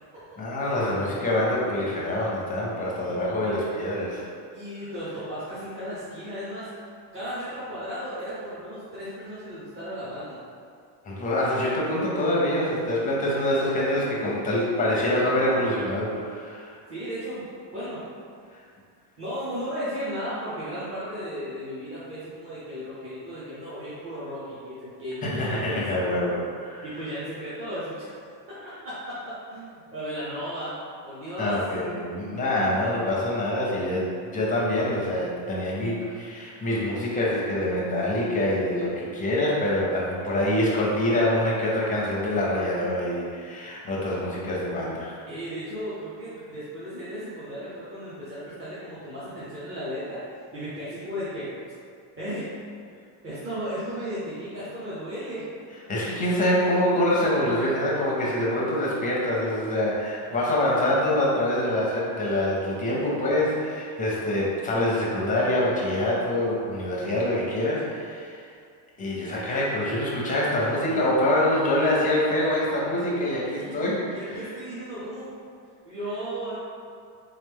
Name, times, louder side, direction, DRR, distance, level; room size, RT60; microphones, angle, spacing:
voice 1, 0.4-4.3 11.1-16.8 25.2-26.8 31.4-45.1 55.9-68.4 69.0-74.4, left 1 dB, 15° left, -5 dB, 0.5 m, -25 dB
voice 2, 4.5-6.7 7.1-10.4 16.9-18.1 19.2-25.8 26.8-28.1 28.5-30.8 31.0-31.6 45.3-51.5 52.2-52.5 53.2-55.5 73.6-75.3 75.8-76.5, equal, 25° right, -12 dB, 0.8 m, -35 dB
3.6 x 3.2 x 3.5 m, 2.2 s
cardioid pair, 165°, 49 cm